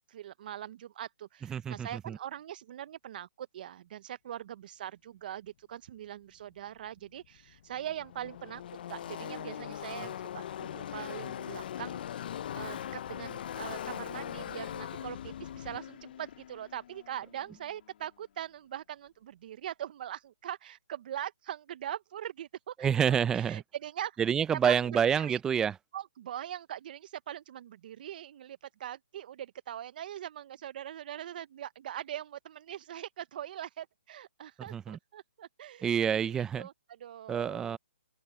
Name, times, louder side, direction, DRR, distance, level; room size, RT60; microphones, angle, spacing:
voice 1, 0.1-8.6 8.9-24.2 24.7-25.4 25.9-37.8, right 11 dB, 45° right, 0.7 m, -42 dB
voice 2, 1.5-2.2 22.8-23.6 24.2-25.7 34.7-35.0 35.8-36.7 37.3-37.8, right 8 dB, 10° right, 0.5 m, -28 dB
Car passing by / Race car auto racing, 7.0-7.1 7.2-17.8, left 10 dB, 45° left, 0.6 m, -41 dB
open air
hypercardioid pair, 155°, 7 cm